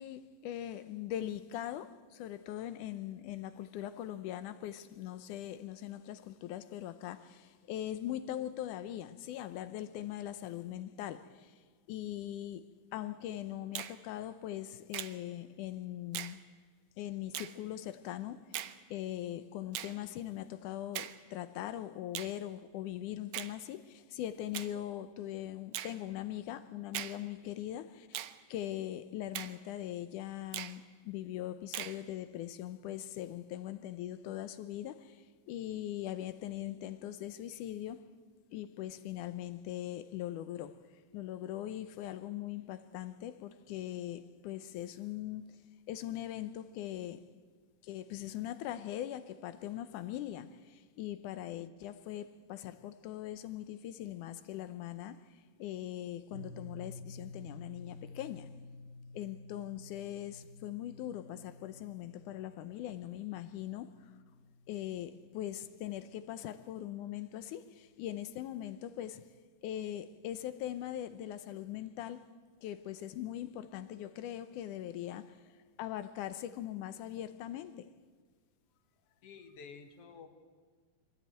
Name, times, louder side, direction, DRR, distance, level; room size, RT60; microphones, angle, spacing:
voice 1, 0.0-11.5 11.9-12.7 12.9-16.4 17.0-38.1 38.5-40.8 41.1-45.5 45.9-47.2 47.8-55.3 55.6-58.5 59.1-64.1 64.7-69.2 69.6-72.2 72.6-75.4 75.8-77.9, left 12 dB, 75° left, 2.1 m, -41 dB
Finger snapping, 13.7-14.0 14.9-15.2 16.1-16.4 17.3-17.5 18.5-18.8 19.7-20.0 20.9-21.2 22.1-22.3 23.3-23.5 24.5-24.7 25.7-26.0 26.9-27.2 28.1-28.4 29.3-29.6 30.5-30.8 31.7-32.0, right 13 dB, 70° right, 1.7 m, -40 dB
sound 1, 56.3-66.5, left 2 dB, 35° right, 1.3 m, -52 dB
voice 2, 79.2-80.3, left 5 dB, 55° left, 2.1 m, -51 dB
23.0 x 15.0 x 9.2 m
omnidirectional pair, 3.8 m